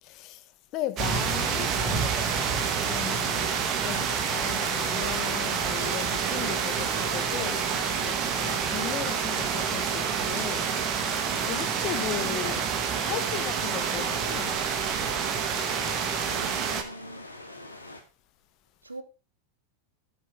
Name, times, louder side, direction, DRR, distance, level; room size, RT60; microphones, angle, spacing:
voice 1, 0.0-7.6 8.0-11.0 11.5-12.7 13.0-14.6, left 14 dB, 40° left, 1.1 m, -37 dB
sound 1, 1.0-16.8, right 7 dB, 35° right, 1.6 m, -28 dB
sound 2, 4.7-18.0, left 2 dB, 85° left, 2.2 m, -44 dB
voice 2, 6.0-6.7 16.2-17.2 18.8-19.0, right 2 dB, 80° right, 1.3 m, -44 dB
13.0 x 6.4 x 4.8 m
figure-of-eight pair, 90°, 0 cm